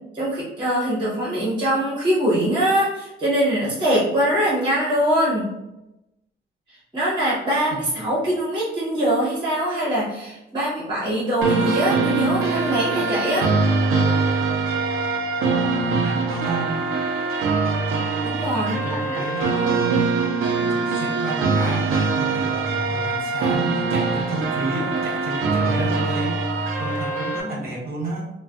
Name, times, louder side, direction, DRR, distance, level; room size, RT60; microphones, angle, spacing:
voice 1, 0.1-5.5 6.9-13.5 18.2-19.3, right 1 dB, 20° right, -7 dB, 1.0 m, -23 dB
voice 2, 7.7-8.0 15.4-16.8 18.5-20.2 20.6-26.4 26.8-28.3, right 2 dB, 45° right, -2 dB, 0.8 m, -31 dB
sound 1, 11.4-27.4, right 3 dB, 80° right, 0.5 m, -23 dB
3.2 x 2.1 x 2.4 m, 0.92 s
wide cardioid pair, 180°, 21 cm